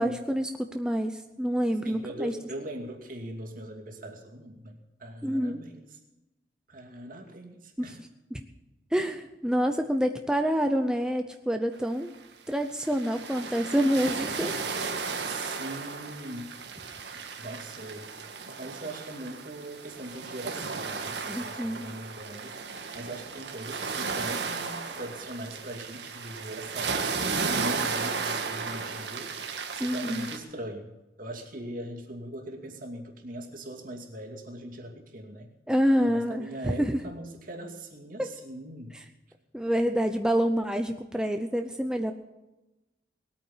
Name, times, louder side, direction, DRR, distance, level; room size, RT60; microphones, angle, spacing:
voice 1, 0.0-2.3 5.2-5.6 7.8-7.9 8.3-8.4 8.9-12.1 12.5-15.2 21.3-21.9 29.8-30.2 35.7-37.0 38.2-38.3 39.5-42.1, equal, 5° right, 5 dB, 0.7 m, -27 dB
voice 2, 1.8-6.0 6.7-8.0 15.2-16.6 17.1-18.1 18.6-22.6 22.9-29.3 29.7-30.9 31.2-35.5 35.9-39.0, right 1 dB, 50° right, 2 dB, 2.6 m, -40 dB
sound 1, 12.1-12.2 12.6-30.4, right 4 dB, 75° right, 1.8 m, -34 dB
19.5 x 9.0 x 7.3 m, 1.0 s
head